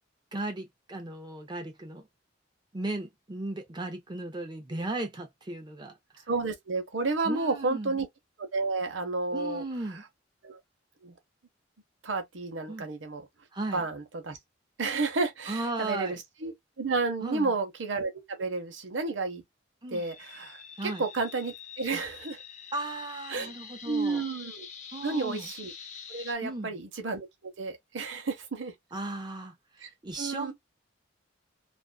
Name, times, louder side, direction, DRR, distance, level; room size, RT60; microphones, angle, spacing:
voice 1, 0.3-2.0 2.7-5.9 7.3-8.0 9.3-10.0 12.7-12.9 13.5-13.8 15.5-16.2 17.2-17.5 19.8-20.0 20.8-21.0 22.7-24.2 24.9-25.5 26.4-26.7 28.9-30.5, right 2 dB, 25° right, 0.5 m, -36 dB
voice 2, 6.3-8.1 8.4-9.6 10.4-10.6 11.0-11.2 12.0-13.3 13.7-14.4 14.8-19.4 19.9-22.4 23.3-23.5 23.8-24.7 25.0-25.7 26.1-28.7 29.8-29.9 30.2-30.5, right 3 dB, 80° right, 0.8 m, -31 dB
sound 1, 19.9-26.3, left 7 dB, 40° left, 0.5 m, -46 dB
2.4 x 2.3 x 2.2 m
head